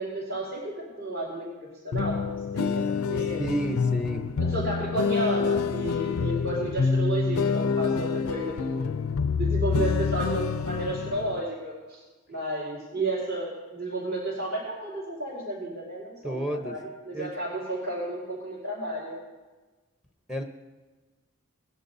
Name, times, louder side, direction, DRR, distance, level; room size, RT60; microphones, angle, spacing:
voice 1, 0.0-2.8 3.1-3.4 4.4-8.9 9.4-12.0 12.3-19.2, right 1 dB, 55° right, -9 dB, 4.4 m, -32 dB
sound 1, 1.9-11.4, left 5 dB, 85° left, 0.4 m, -27 dB
voice 2, 3.4-4.3 16.2-16.8 17.1-17.3 20.3-20.4, right 1 dB, 5° right, 3 dB, 0.8 m, -31 dB
20.0 x 11.0 x 2.7 m, 1.3 s
head